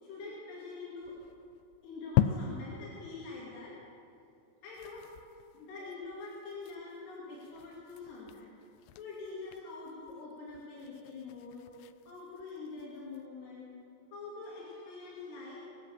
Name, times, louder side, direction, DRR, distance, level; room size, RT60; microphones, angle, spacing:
voice 1, 0.0-1.1 1.8-3.7 4.6-5.0 5.5-8.5 9.0-11.6 12.1-13.7 14.1-15.6, left 3 dB, 70° left, -6 dB, 4.5 m, -45 dB
sound 1, 1.0-2.9 3.3-3.4 3.7-3.8 4.1-4.3 4.6-13.3, left 11 dB, 90° left, 2.1 m, -38 dB
22.5 x 7.8 x 7.2 m, 2.7 s
omnidirectional pair, 5.0 m